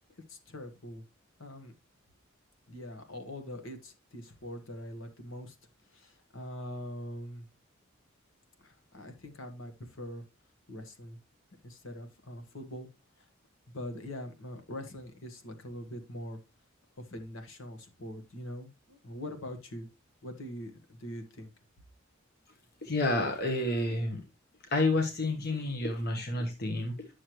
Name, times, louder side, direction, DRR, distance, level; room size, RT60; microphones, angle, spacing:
voice 1, 0.3-1.0 1.4-1.7 2.7-5.6 5.9-7.4 8.6-10.2 10.7-11.2 11.6-12.9 13.2-13.3 13.7-16.4 17.0-19.9 20.2-21.5, equal, 70° left, 7 dB, 1.5 m, -43 dB
voice 2, 22.8-24.2 24.7-27.1, left 2 dB, 50° left, 4 dB, 1.2 m, -29 dB
9.6 x 6.5 x 3.0 m, 0.25 s
head